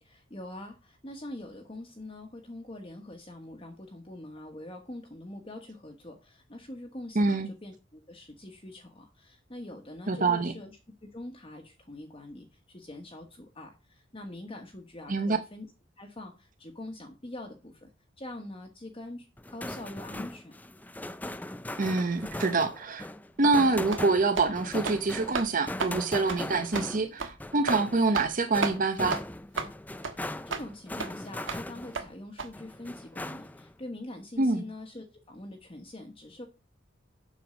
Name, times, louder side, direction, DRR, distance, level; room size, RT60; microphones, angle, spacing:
voice 1, 0.0-10.7 11.0-15.7 16.0-17.9 18.2-20.5 30.1-36.5, left 1 dB, 30° left, 1.3 m, -44 dB
voice 2, 7.1-7.5 10.1-10.5 15.1-15.4 21.8-23.1 23.4-29.2 34.4-34.7, right 3 dB, 45° right, 0.8 m, -26 dB
sound 1, 19.4-32.1 32.5-33.7, left 1 dB, 10° left, 0.4 m, -39 dB
sound 2, 23.4-23.6 23.9-24.1 24.4-24.5 24.8-25.0 25.3-25.5 25.8-26.0 26.3-26.4 26.7-26.9 27.2-27.3 27.7-27.8 28.1-28.3 28.6-28.8 29.1-29.2 29.6-29.7 30.0-30.2 30.5-30.7 31.0-31.1 31.5-31.6 32.0-32.1 32.4-32.5, right 4 dB, 80° right, 1.4 m, -32 dB
7.5 x 7.1 x 5.1 m
head